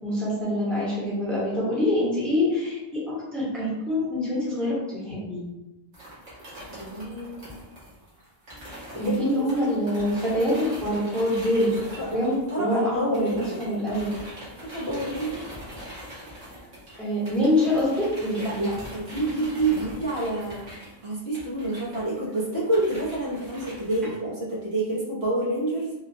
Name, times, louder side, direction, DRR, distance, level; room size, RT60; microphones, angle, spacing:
voice 1, 0.0-5.4 9.0-11.8 12.1-13.3 13.6-14.1 17.0-18.6, left 1 dB, ahead, -8 dB, 1.0 m, -25 dB
sound 1, 5.9-12.8 13.1-24.0, equal, 85° right, 1.5 m, -42 dB
voice 2, 6.7-7.5 8.9-9.7 11.6-13.7 14.7-15.5 18.4-20.6 21.0-25.9, right 1 dB, 60° right, -8 dB, 1.3 m, -28 dB
3.6 x 2.3 x 2.7 m, 0.99 s
omnidirectional pair, 1.2 m